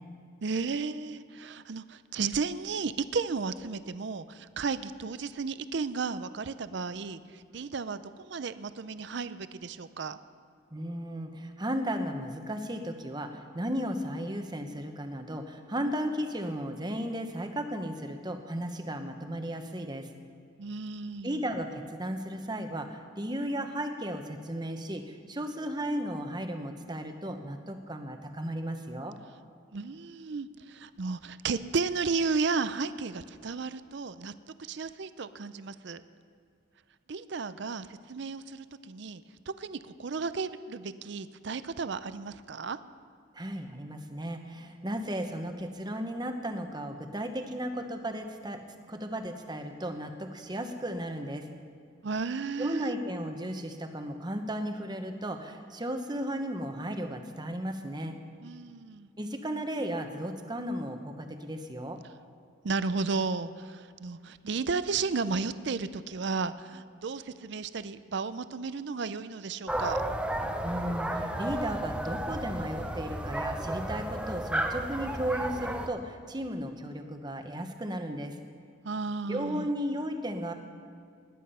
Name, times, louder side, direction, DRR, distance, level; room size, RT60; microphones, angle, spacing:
voice 1, 0.4-10.2 20.6-21.4 29.7-34.3 34.6-36.0 37.1-42.8 52.0-52.9 58.4-59.1 62.6-70.0 78.8-79.7, right 4 dB, 60° right, 14 dB, 0.5 m, -33 dB
voice 2, 10.7-20.1 21.2-29.2 43.3-51.5 52.6-58.2 59.2-62.0 70.6-78.4 79.3-80.5, equal, 20° right, 6 dB, 1.0 m, -35 dB
sound 1, 69.7-75.9, right 1 dB, 5° right, 0.7 m, -33 dB
20.0 x 9.6 x 5.6 m, 2.2 s
head